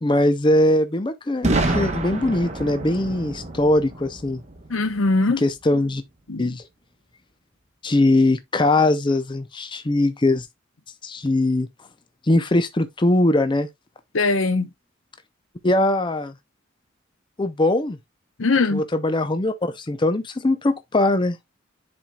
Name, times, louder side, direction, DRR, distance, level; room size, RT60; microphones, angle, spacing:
voice 1, 0.0-4.4 5.4-6.0 6.4-6.6 7.8-10.5 11.0-11.7 12.3-13.7 15.6-16.3 17.4-18.0 18.7-21.4, left 1 dB, 25° left, 0.5 m, -21 dB
Boom, 1.4-5.3, right 2 dB, 35° right, 1.0 m, -27 dB
voice 2, 4.7-5.4 6.3-6.5 14.1-14.7 18.4-18.8, left 3 dB, 90° left, 0.8 m, -21 dB
10.0 x 4.4 x 2.3 m
head